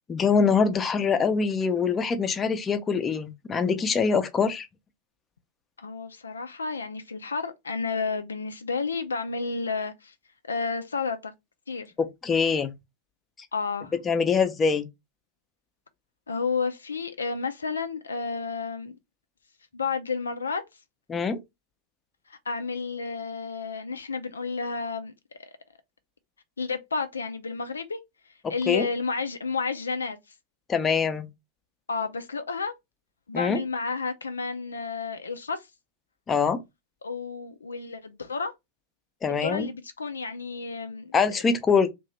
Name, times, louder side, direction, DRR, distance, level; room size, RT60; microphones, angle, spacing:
voice 1, 0.1-4.7 12.2-12.7 14.1-14.9 21.1-21.4 28.7-28.9 30.7-31.3 33.3-33.6 36.3-36.6 39.2-39.7 41.1-41.9, left 5 dB, 20° left, 0.5 m, -24 dB
voice 2, 5.8-10.1 10.5-11.3 11.7-11.9 13.5-13.9 16.3-19.0 19.7-20.6 22.3-25.1 25.4-25.5 26.6-28.0 28.5-30.2 31.9-32.7 33.3-35.7 37.0-38.5 39.3-41.1, left 4 dB, 75° left, 0.3 m, -31 dB
2.8 x 2.5 x 3.1 m
figure-of-eight pair, 90°, 0 cm